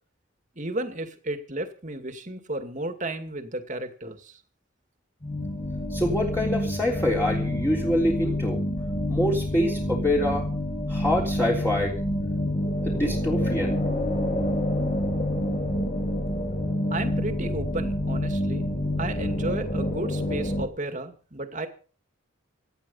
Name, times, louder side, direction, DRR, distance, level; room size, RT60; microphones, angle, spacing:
voice 1, 0.6-4.4 16.9-18.7 19.0-21.7, right 2 dB, 35° right, 8 dB, 2.4 m, -33 dB
sound 1, 5.2-20.7, left 1 dB, 35° left, 6.0 m, -27 dB
voice 2, 5.9-8.6 9.1-10.4 10.9-12.0 12.8-13.8, left 1 dB, 10° left, -3 dB, 3.6 m, -25 dB
18.0 x 12.0 x 5.6 m, 0.40 s
head